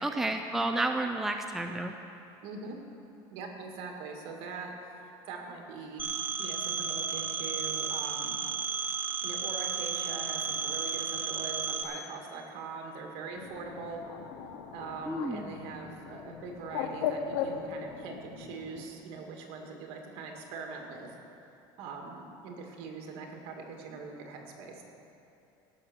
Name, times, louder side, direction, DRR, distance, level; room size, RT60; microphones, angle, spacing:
voice 1, 0.0-1.9 15.1-15.5, right 2 dB, 5° right, 4 dB, 0.5 m, -31 dB
voice 2, 2.4-2.8 3.3-4.7 5.0-6.1 6.4-8.4 9.2-14.0 14.7-21.2 21.8-24.8, right 4 dB, 65° right, 2 dB, 2.1 m, -42 dB
Telephone, 6.0-11.8, right 6 dB, 20° right, 0.9 m, -33 dB
Bird, 13.4-18.9, left 7 dB, 90° left, 0.9 m, -38 dB
17.5 x 6.5 x 6.3 m, 3.0 s
cardioid pair, 140°, 11 cm